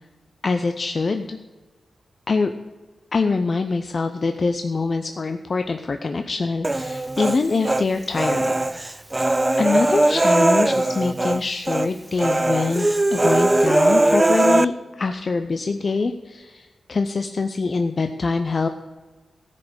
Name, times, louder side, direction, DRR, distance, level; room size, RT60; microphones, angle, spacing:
voice 1, 0.4-1.4 2.3-2.5 3.1-8.5 9.6-18.7, left 4 dB, 50° left, 7 dB, 0.5 m, -24 dB
Human voice, 6.6-7.8 8.2-11.4 11.7-11.9 12.2-14.7, right 2 dB, 20° right, 0.4 m, -20 dB
14.0 x 5.0 x 6.4 m, 1.3 s
cardioid pair, 80°, 0 cm